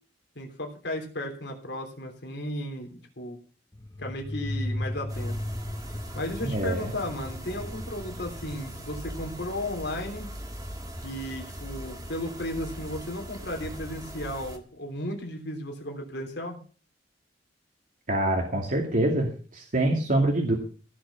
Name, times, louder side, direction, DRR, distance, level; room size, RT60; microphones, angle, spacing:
voice 1, 0.3-3.4 4.0-5.3 6.1-10.3 11.0-16.6, left 1 dB, 65° left, 2 dB, 3.3 m, -35 dB
sound 1, 3.7-12.1, left 1 dB, 20° left, 0.7 m, -37 dB
sound 2, 5.1-14.6, equal, 20° right, 2.0 m, -40 dB
voice 2, 6.4-6.9 18.1-20.5, right 1 dB, 50° right, 0 dB, 2.5 m, -25 dB
16.0 x 6.4 x 7.0 m, 0.39 s
head